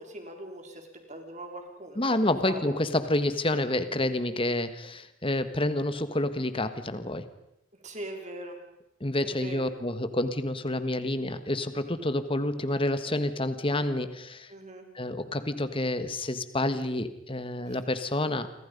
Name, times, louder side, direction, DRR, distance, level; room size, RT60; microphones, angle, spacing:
voice 1, 0.0-2.7 7.8-8.6 9.2-9.7 14.5-14.9, right 1 dB, 35° right, 3 dB, 4.5 m, -41 dB
voice 2, 1.9-7.3 9.0-14.5 14.9-18.5, left 1 dB, 25° left, 11 dB, 1.5 m, -29 dB
28.5 x 25.0 x 5.4 m, 0.83 s
head